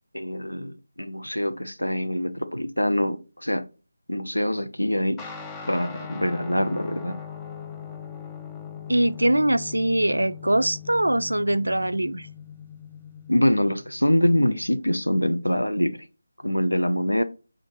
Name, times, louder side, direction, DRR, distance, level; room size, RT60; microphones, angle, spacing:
voice 1, 0.1-3.6 4.1-5.2 5.7-7.1 13.3-16.0 16.4-17.2, equal, 85° left, 0.7 m, -24 dB
Guitar, 5.2-14.9, left 7 dB, 10° left, 0.3 m, -40 dB
voice 2, 8.9-12.3, right 1 dB, 75° right, 0.3 m, -22 dB
7.0 x 2.5 x 2.7 m
figure-of-eight pair, 160°, 0 cm